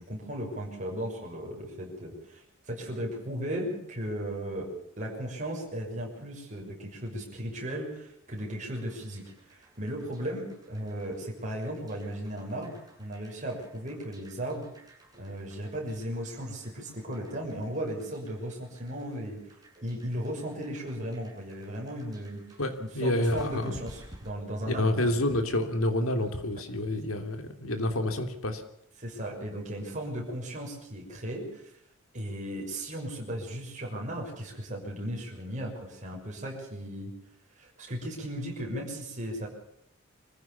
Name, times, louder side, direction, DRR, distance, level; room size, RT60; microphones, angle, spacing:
voice 1, 0.0-4.7 5.0-14.7 15.2-19.4 19.8-25.1 29.0-31.7 32.1-37.1 37.6-39.5, right 1 dB, 35° right, -1 dB, 6.3 m, -36 dB
sound 1, 8.3-24.3, right 1 dB, 20° right, 8.0 m, -55 dB
voice 2, 22.6-23.7 24.7-28.6, left 1 dB, 75° left, 6 dB, 3.1 m, -28 dB
25.0 x 15.5 x 7.1 m, 0.75 s
head